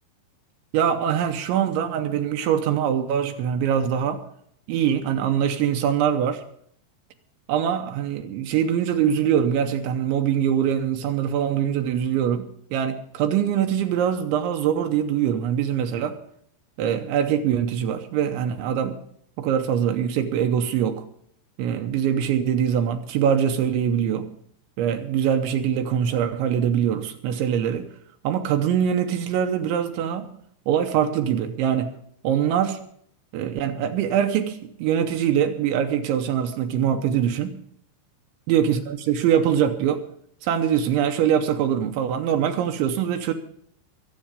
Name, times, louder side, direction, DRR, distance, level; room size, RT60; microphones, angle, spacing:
voice 1, 0.7-4.2 4.7-6.4 7.5-16.2 16.8-19.0 19.4-21.0 21.6-24.3 24.8-27.9 28.2-30.3 30.7-31.9 32.2-32.8 33.3-37.6 38.5-40.0 40.4-43.3, right 9 dB, 80° right, 3.1 m, -23 dB
22.5 x 8.3 x 5.2 m
omnidirectional pair, 5.6 m